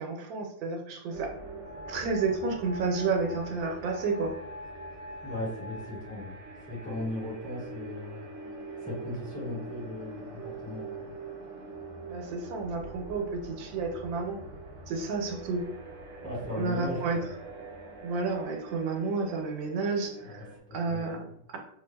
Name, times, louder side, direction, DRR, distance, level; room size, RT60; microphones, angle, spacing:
voice 1, 0.0-1.3 1.9-4.3 12.1-14.4 14.9-15.6 16.6-17.2 18.0-21.6, right 4 dB, 85° right, 3 dB, 1.3 m, -31 dB
sound 1, 1.1-20.6, right 3 dB, 70° right, 0.7 m, -44 dB
sound 2, 1.6-8.6 9.4-10.0, left 2 dB, 40° left, 1.2 m, -46 dB
voice 2, 5.2-8.2 8.8-11.1 16.2-17.3 20.2-21.3, left 1 dB, 5° left, -6 dB, 1.0 m, -38 dB
4.0 x 2.5 x 2.2 m, 0.69 s
omnidirectional pair, 2.0 m